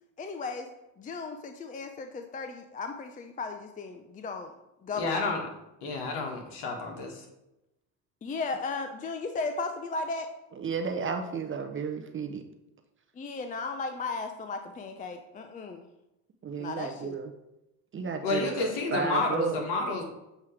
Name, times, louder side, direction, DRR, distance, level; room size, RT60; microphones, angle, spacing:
voice 1, 0.2-0.7 1.0-4.5 4.8-5.3 8.2-10.3 13.2-15.8 16.6-17.2, left 3 dB, 20° left, 7 dB, 0.5 m, -35 dB
voice 2, 4.9-5.4 5.8-7.2 18.2-20.0, left 3 dB, 65° left, 1 dB, 1.7 m, -30 dB
voice 3, 10.5-12.4 16.4-17.3 17.9-19.6, right 5 dB, 30° right, 6 dB, 0.7 m, -33 dB
7.4 x 3.1 x 4.8 m, 0.93 s
hypercardioid pair, 75°, 44 cm